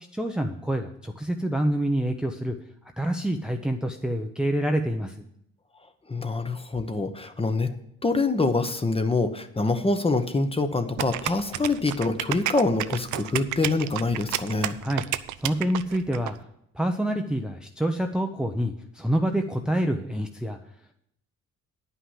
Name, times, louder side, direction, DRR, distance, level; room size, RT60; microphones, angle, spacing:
voice 1, 0.1-2.5 3.0-5.3 14.8-15.0 15.4-16.3 16.7-20.6, right 1 dB, 5° right, 4 dB, 0.7 m, -27 dB
voice 2, 6.1-7.7 8.0-14.8, left 3 dB, 20° left, 8 dB, 1.1 m, -25 dB
sound 1, 11.0-16.3, right 13 dB, 75° right, 0.6 m, -31 dB
9.9 x 5.8 x 7.4 m, 0.74 s
cardioid pair, 90°, 30 cm